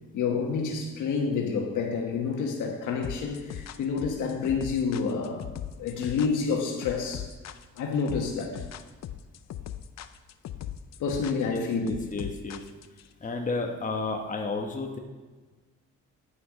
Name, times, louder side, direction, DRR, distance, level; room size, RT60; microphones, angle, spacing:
voice 1, 0.1-5.5 5.8-7.3 7.8-8.6 11.0-12.0, left 5 dB, 80° left, 2 dB, 1.5 m, -28 dB
sound 1, 3.0-13.1, left 11 dB, 60° left, 0.6 m, -39 dB
voice 2, 11.5-12.6 13.2-15.0, left 3 dB, 25° left, 2 dB, 1.2 m, -32 dB
10.0 x 5.8 x 5.1 m, 1.4 s
cardioid pair, 90°, 30 cm